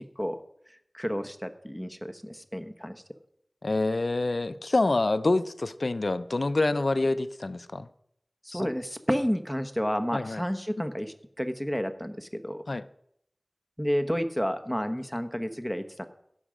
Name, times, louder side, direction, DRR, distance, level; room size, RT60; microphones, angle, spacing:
voice 1, 0.9-3.0 8.4-12.6 13.8-16.0, equal, ahead, 8 dB, 1.0 m, -31 dB
voice 2, 3.6-7.9 8.5-8.6 10.1-10.4 12.7-12.8, left 2 dB, 85° left, 14 dB, 0.5 m, -26 dB
16.0 x 6.4 x 5.0 m, 0.73 s
wide cardioid pair, 45°, 0 cm